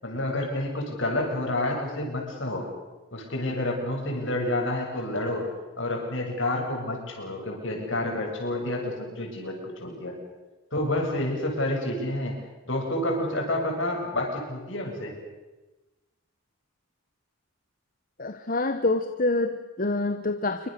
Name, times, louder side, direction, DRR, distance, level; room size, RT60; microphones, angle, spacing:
voice 1, 0.0-2.7 3.1-5.5 5.8-10.1 10.7-12.4 12.7-15.2, left 1 dB, 60° left, 1 dB, 7.3 m, -29 dB
voice 2, 18.2-20.7, left 2 dB, 40° left, 8 dB, 1.2 m, -26 dB
27.5 x 24.5 x 6.8 m, 1.1 s
head